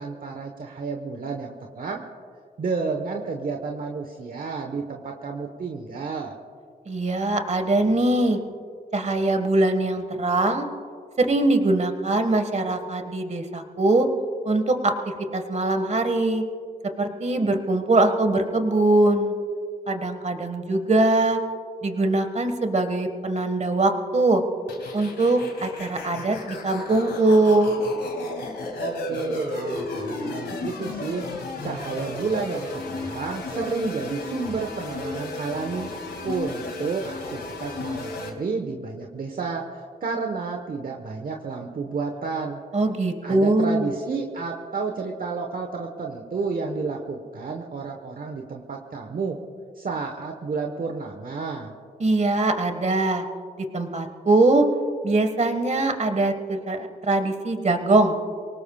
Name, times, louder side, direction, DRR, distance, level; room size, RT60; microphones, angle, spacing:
voice 1, 0.0-2.0 2.6-6.3 28.8-31.2 31.6-35.9 36.2-42.6 43.2-49.4 49.7-51.7, right 4 dB, 60° right, 3 dB, 1.2 m, -31 dB
voice 2, 6.9-8.4 8.9-10.7 11.2-14.1 14.4-14.9 15.3-16.4 17.0-19.3 19.9-21.4 21.8-24.4 24.9-27.8 42.7-43.9 52.0-53.2 53.7-54.6 55.0-58.1, right 2 dB, 45° right, 7 dB, 1.6 m, -22 dB
sound 1, 24.7-38.3, left 2 dB, 85° left, 2.3 m, -34 dB
24.0 x 18.5 x 2.4 m, 2.1 s
cardioid pair, 60°, 17 cm